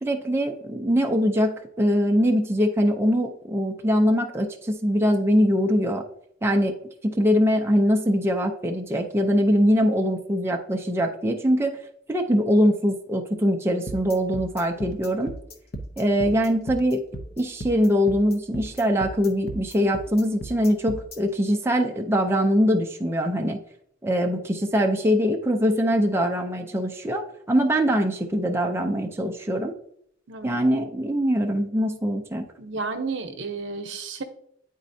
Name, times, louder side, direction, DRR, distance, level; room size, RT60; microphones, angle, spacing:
voice 1, 0.0-6.0 6.4-6.7 7.1-11.8 12.1-15.3 16.0-17.0 17.4-23.6 24.0-29.7 30.4-32.5, equal, 15° right, 2 dB, 0.4 m, -22 dB
sound 1, 13.9-21.2, equal, 55° left, 0.7 m, -36 dB
voice 2, 30.3-30.6 32.6-34.2, right 4 dB, 65° right, 6 dB, 0.8 m, -32 dB
9.1 x 4.1 x 2.6 m, 0.71 s
head